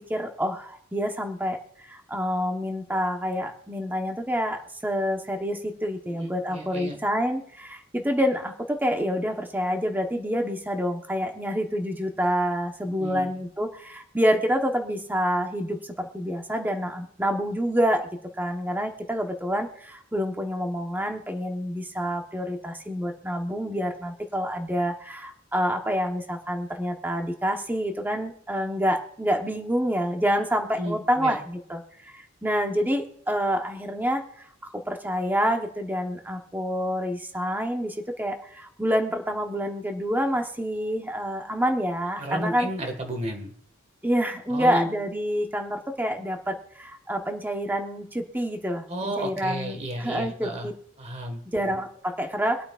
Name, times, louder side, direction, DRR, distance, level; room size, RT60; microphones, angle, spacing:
voice 1, 0.0-1.6 1.9-18.1 18.4-34.2 34.9-42.7 44.0-50.7 51.5-52.6, equal, 10° right, 4 dB, 1.1 m, -27 dB
voice 2, 6.2-7.0 13.0-13.3 30.8-31.4 42.2-43.5 44.5-44.9 48.9-50.7 51.0-51.4, right 1 dB, 35° right, 4 dB, 1.7 m, -32 dB
24.5 x 8.6 x 2.5 m, 0.67 s
head